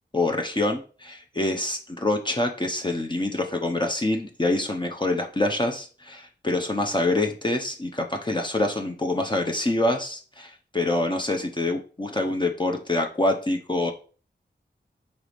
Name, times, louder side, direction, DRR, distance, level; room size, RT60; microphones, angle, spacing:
voice 1, 0.1-13.9, left 2 dB, 25° left, 2 dB, 0.8 m, -26 dB
4.7 x 4.2 x 5.1 m, 0.39 s
wide cardioid pair, 75°, 18 cm